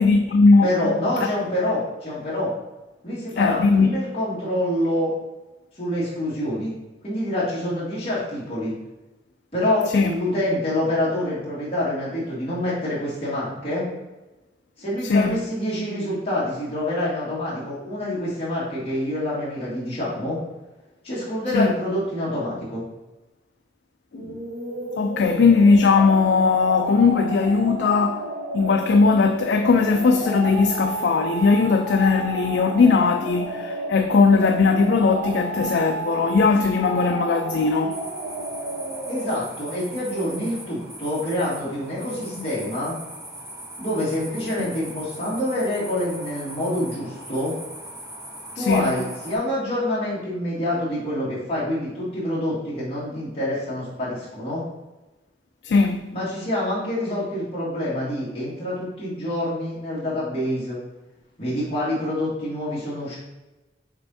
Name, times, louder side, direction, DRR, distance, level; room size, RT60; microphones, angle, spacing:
voice 1, 0.0-0.7 3.4-4.0 9.9-10.1 15.0-15.4 21.5-21.7 24.1-24.4 25.0-28.2 28.5-38.0 42.4-42.5 48.6-48.9 55.6-56.1, left 4 dB, 65° left, 0.3 m, -19 dB
voice 2, 0.6-2.5 3.0-5.1 5.8-6.7 7.0-8.8 9.5-13.9 14.8-20.4 21.0-22.8 39.1-43.0 43.8-47.5 48.5-54.6 56.1-60.8 61.4-63.2, left 1 dB, 30° left, 2.1 m, -26 dB
sound 1, 24.1-39.4, right 2 dB, 70° right, 0.9 m, -31 dB
sound 2, 37.9-49.4, right 1 dB, 15° right, 1.4 m, -40 dB
6.6 x 3.5 x 4.1 m
head